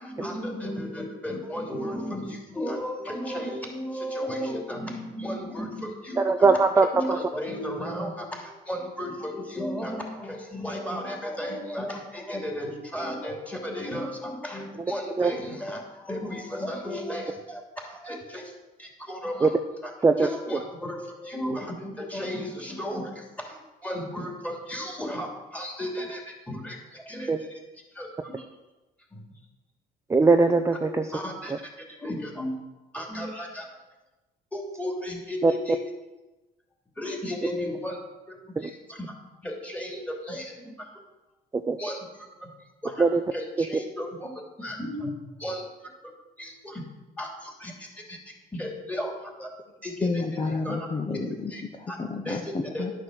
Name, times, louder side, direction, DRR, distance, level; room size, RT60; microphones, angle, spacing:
voice 1, 0.0-6.5 6.9-19.5 19.8-19.9 20.2-27.5 27.9-28.5 29.1-29.2 30.8-32.5 32.9-33.6 34.5-35.8 37.0-38.0 38.3-39.0 39.4-40.9 41.8-42.3 42.8-43.1 43.3-44.3 44.6-45.1 45.4-45.9 46.4-46.8 47.2-48.2 48.5-49.5 49.8-50.2 50.6-50.9 51.5-51.6 51.9-52.0 52.2-52.4 52.7-52.8, equal, 10° left, 0 dB, 3.0 m, -34 dB
voice 2, 6.2-7.2 15.2-15.3 19.4-19.5 20.0-20.3 27.3-27.4 30.1-31.1 31.5-31.6 35.4-35.5 38.6-38.7 41.7-41.8 43.0-43.2 43.6-43.7, right 3 dB, 15° right, 6 dB, 0.5 m, -20 dB
voice 3, 50.0-51.5 51.8-52.9, left 3 dB, 30° left, 3 dB, 1.0 m, -30 dB
11.5 x 6.5 x 6.4 m, 1.1 s
cardioid pair, 110°, 17 cm